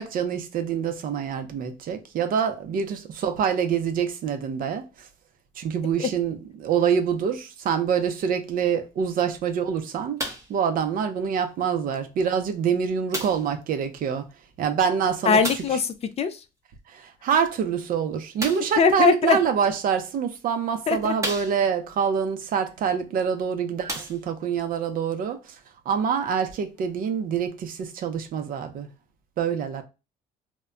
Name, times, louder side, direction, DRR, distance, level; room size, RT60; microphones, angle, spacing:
voice 1, 0.0-4.9 5.6-10.2 10.5-14.3 14.6-15.4 16.9-25.4 25.9-28.9 29.4-29.8, right 7 dB, 55° right, 0.5 m, -26 dB
sound 1, 10.2-10.6 11.5-11.6 13.1-13.6 15.4-15.8 18.4-18.8 19.8-19.9 20.5-20.6 21.2-21.9 23.2-23.3 23.8-24.5 25.4-25.5, right 1 dB, 15° right, 0.8 m, -33 dB
voice 2, 15.2-16.4 18.8-19.4 20.9-21.1, left 6 dB, 40° left, 0.3 m, -21 dB
2.1 x 2.1 x 3.6 m
cardioid pair, 110°, 17 cm